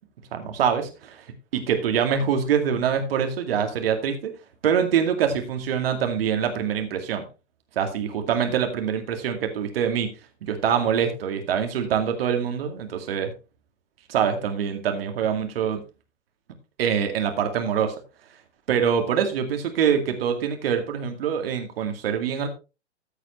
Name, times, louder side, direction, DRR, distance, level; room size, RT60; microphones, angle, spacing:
voice 1, 0.3-1.2 1.5-4.3 4.6-7.2 7.8-10.1 10.4-13.3 14.1-15.8 16.8-17.9 18.7-22.5, right 8 dB, 55° right, 6 dB, 2.2 m, -24 dB
14.0 x 8.1 x 3.1 m, 0.30 s
figure-of-eight pair, 110°, 35 cm